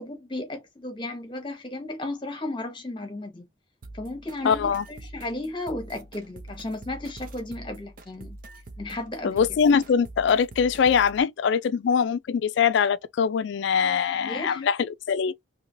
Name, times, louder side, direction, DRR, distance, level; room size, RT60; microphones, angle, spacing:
voice 1, 0.0-3.4 3.9-8.4 8.8-9.5 14.1-14.6, left 2 dB, 25° left, 0.9 m, -34 dB
sound 1, 3.8-11.2, right 2 dB, 45° right, 0.6 m, -44 dB
voice 2, 4.4-4.8 9.2-14.8 15.1-15.3, left 6 dB, 65° left, 0.3 m, -22 dB
3.0 x 2.8 x 2.6 m
head